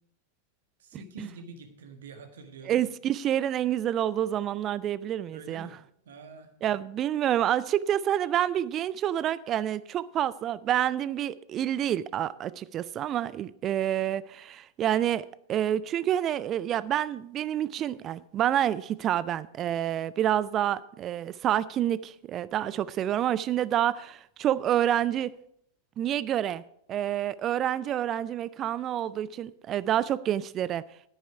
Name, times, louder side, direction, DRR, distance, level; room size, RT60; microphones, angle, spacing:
voice 1, 0.8-2.8 5.3-5.8 6.0-6.5, right 3 dB, 60° right, 1.5 m, -46 dB
voice 2, 2.6-5.7 6.6-25.3 26.0-26.6 26.9-30.8, right 11 dB, 30° right, 0.3 m, -28 dB
10.5 x 9.6 x 4.7 m
figure-of-eight pair, 90°, 0 cm